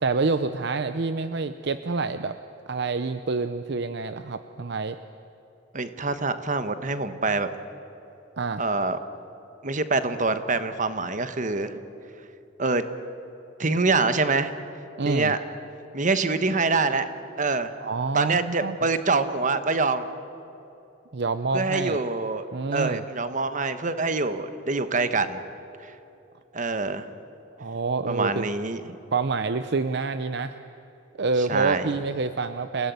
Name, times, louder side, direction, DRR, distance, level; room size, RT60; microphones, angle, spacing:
voice 1, 0.0-2.3 2.7-5.0 8.4-8.6 15.0-15.3 17.8-18.8 21.1-22.0 22.5-23.0 27.6-28.5 29.1-30.6 31.2-32.9, right 4 dB, 60° right, 10 dB, 0.7 m, -27 dB
voice 2, 5.7-7.5 8.6-9.0 9.6-11.7 12.6-12.8 13.6-14.5 15.0-15.4 15.9-17.1 17.4-17.7 18.1-20.0 21.5-22.5 22.7-25.4 26.5-27.1 28.1-28.9 31.5-31.9, right 3 dB, 40° right, 10 dB, 1.3 m, -25 dB
28.0 x 17.5 x 9.5 m, 2.9 s
head